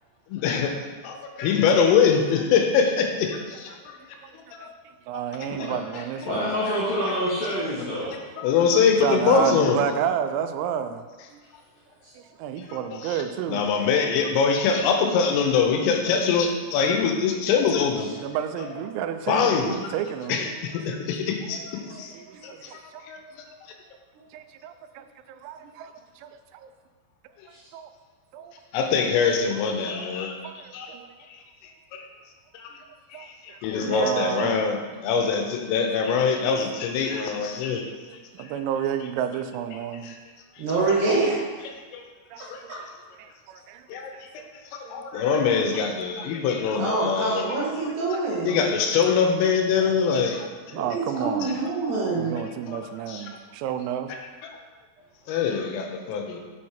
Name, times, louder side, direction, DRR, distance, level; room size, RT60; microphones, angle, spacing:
voice 1, 0.3-0.7 1.0-4.0 4.5-4.7 5.9-6.0 6.7-6.8 8.4-9.9 12.7-12.8 13.0-13.2 13.5-18.1 18.6-18.7 19.3-19.9 20.3-22.1 22.4-22.7 23.0-23.2 28.7-30.3 30.7-30.9 31.9-32.0 32.5-32.8 33.1-37.9 40.0-40.2 41.9-42.0 42.4-42.6 43.9-44.3 44.7-47.5 48.5-50.5 51.1-51.2 52.7-52.8 53.1-53.4 55.3-56.4, left 6 dB, 90° left, 3 dB, 3.4 m, -23 dB
voice 2, 5.1-6.5 9.0-11.1 12.2-13.8 18.0-20.5 21.8-23.1 24.3-26.7 27.7-27.9 28.3-28.5 29.5-29.6 30.4-31.1 33.1-34.8 38.1-40.1 42.3-42.7 43.2-43.9 44.1-44.5 45.1-45.2 46.2-46.3 48.2-48.4 49.1-49.2 50.8-51.6 52.2-54.1, right 9 dB, 85° right, 9 dB, 3.2 m, -31 dB
voice 3, 6.3-8.1 12.0-12.1 18.0-18.1 27.5-27.6, equal, 65° left, -9 dB, 2.2 m, -27 dB
voice 4, 40.6-41.4 46.8-48.6 50.7-52.4, right 3 dB, 65° right, -4 dB, 3.2 m, -25 dB
7.3 x 6.4 x 4.3 m, 1.4 s
omnidirectional pair, 5.9 m